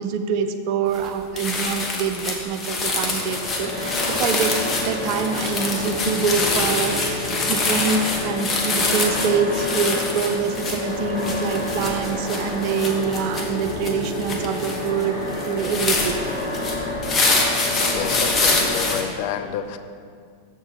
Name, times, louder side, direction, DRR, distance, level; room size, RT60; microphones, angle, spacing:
voice 1, 0.0-4.5 4.8-16.1, right 6 dB, 45° right, 8 dB, 0.5 m, -25 dB
sound 1, 0.9-1.1 1.4-19.0, left 3 dB, 20° left, 1.2 m, -25 dB
sound 2, 2.6-19.0, left 2 dB, 70° left, 1.8 m, -29 dB
voice 2, 17.7-19.8, left 9 dB, 45° left, 8 dB, 0.4 m, -29 dB
7.3 x 6.5 x 4.6 m, 2.2 s
figure-of-eight pair, 90°, 0 cm